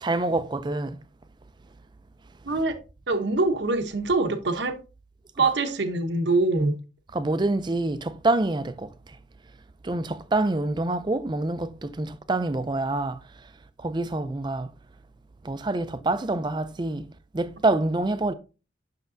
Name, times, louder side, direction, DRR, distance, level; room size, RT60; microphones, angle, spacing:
voice 1, 0.0-1.0 7.1-8.9 9.9-13.2 13.8-14.7 15.5-17.0 17.3-18.3, right 2 dB, 25° right, 0.4 m, -26 dB
voice 2, 2.4-2.8 3.1-4.8 5.4-6.8, right 3 dB, 70° right, 0.9 m, -24 dB
8.0 x 5.9 x 2.6 m
head